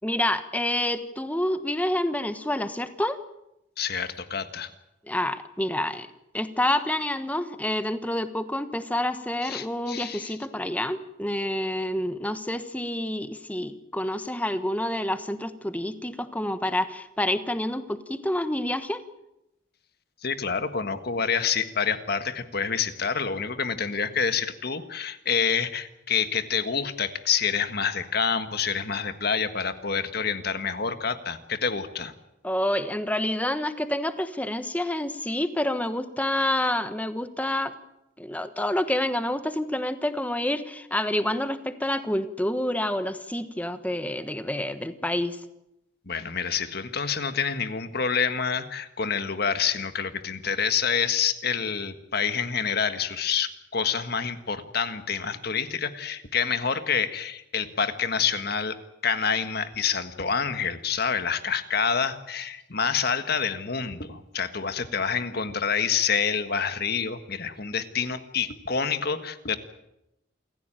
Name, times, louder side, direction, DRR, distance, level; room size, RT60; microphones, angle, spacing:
voice 1, 0.0-3.2 5.1-6.1 6.3-19.0 32.4-37.7 38.2-45.4, left 1 dB, 10° left, 10 dB, 1.2 m, -28 dB
voice 2, 3.8-4.7 9.4-10.4 20.2-32.1 46.1-58.8 59.0-69.6, left 6 dB, 50° left, 10 dB, 1.6 m, -27 dB
28.0 x 15.0 x 9.0 m, 0.89 s
head